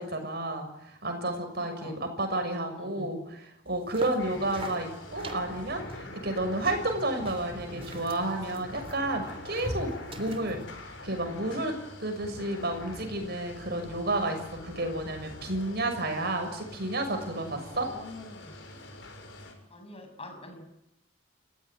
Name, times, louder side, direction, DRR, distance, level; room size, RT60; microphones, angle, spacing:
voice 1, 0.0-9.9 10.2-10.6 11.0-11.7 12.0-17.9, right 1 dB, 55° right, 5 dB, 6.5 m, -31 dB
voice 2, 1.6-2.0 2.6-3.2 4.2-4.4 17.5-18.5 19.7-20.6, left 1 dB, 30° left, 5 dB, 6.6 m, -46 dB
sound 1, 3.7-10.6, right 1 dB, 30° right, 3.0 m, -43 dB
sound 2, 4.2-19.5, left 1 dB, 65° left, 6.8 m, -44 dB
30.0 x 16.5 x 9.5 m, 0.82 s
head